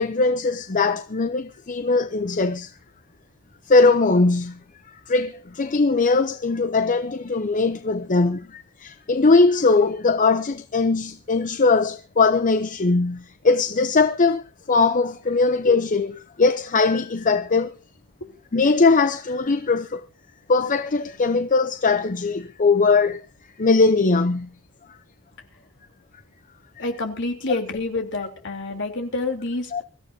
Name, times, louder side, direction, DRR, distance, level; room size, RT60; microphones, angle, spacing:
voice 1, 0.0-2.7 3.7-4.6 5.1-17.7 18.5-20.0 20.5-23.3 23.6-24.5 29.7-29.8, left 3 dB, 35° left, 0.6 m, -20 dB
voice 2, 26.8-29.8, left 2 dB, 55° left, 3.4 m, -28 dB
24.0 x 14.0 x 2.7 m
head